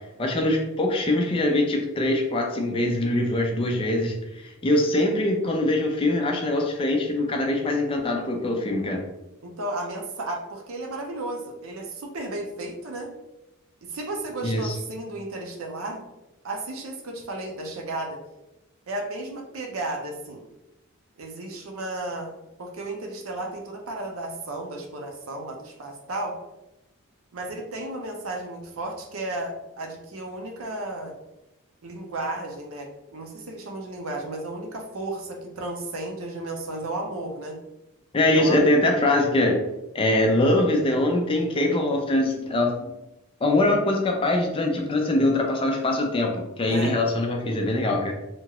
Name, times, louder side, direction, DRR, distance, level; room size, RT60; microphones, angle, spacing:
voice 1, 0.2-4.1 4.4-9.0 14.4-14.8 38.1-39.6 39.9-42.9 43.4-48.1, left 1 dB, 25° left, 2 dB, 0.4 m, -23 dB
voice 2, 9.4-13.1 13.8-16.0 16.4-18.2 18.9-20.4 21.2-22.3 22.6-26.4 27.3-31.1 31.8-37.6 38.3-38.6 46.7-46.9, right 2 dB, 75° right, 2 dB, 0.6 m, -33 dB
2.9 x 2.3 x 2.9 m, 0.94 s
head